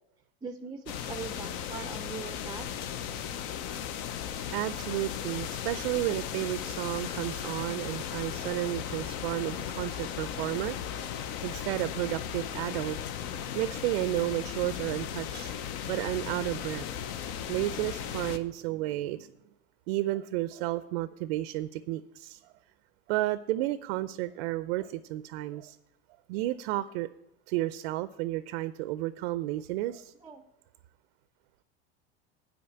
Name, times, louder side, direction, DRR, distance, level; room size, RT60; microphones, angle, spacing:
voice 1, 0.4-2.7 30.2-30.4, right 5 dB, 10° right, 9 dB, 0.4 m, -41 dB
sound 1, 0.9-18.4, left 9 dB, 60° left, 0.7 m, -36 dB
voice 2, 4.5-11.2 11.4-13.0 13.3-15.5 15.9-16.9 17.5-19.3 19.9-22.5 23.1-25.8 26.3-27.1 27.5-30.1, right 16 dB, 70° right, 15 dB, 0.5 m, -32 dB
8.6 x 5.1 x 7.1 m, 0.87 s
supercardioid pair, 115°, 31 cm